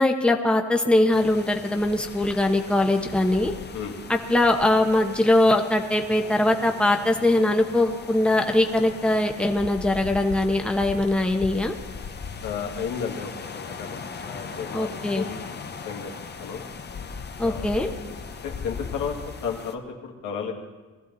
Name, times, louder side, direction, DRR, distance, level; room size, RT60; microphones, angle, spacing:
voice 1, 0.0-3.5 4.1-11.7 14.7-15.2 17.4-17.9, left 1 dB, 5° left, 3 dB, 1.2 m, -21 dB
sound 1, 1.1-19.7, left 5 dB, 35° left, 1.0 m, -38 dB
voice 2, 12.4-14.9 15.1-15.4 15.8-16.1 16.4-16.6 17.4-17.8 18.4-19.1 19.4-20.5, left 7 dB, 85° left, 0 dB, 2.2 m, -33 dB
19.5 x 14.0 x 4.1 m, 1.3 s
cardioid pair, 90°, 30 cm